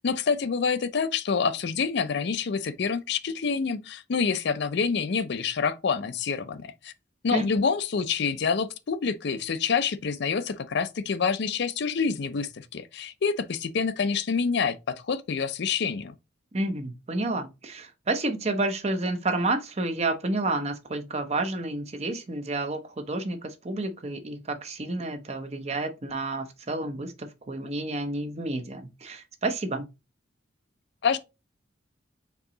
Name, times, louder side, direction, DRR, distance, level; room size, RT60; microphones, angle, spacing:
voice 1, 0.0-6.9 7.2-16.1 31.0-31.2, left 5 dB, 60° left, 0.5 m, -27 dB
voice 2, 16.5-29.9, right 2 dB, 35° right, 0.7 m, -30 dB
4.6 x 2.8 x 3.8 m
head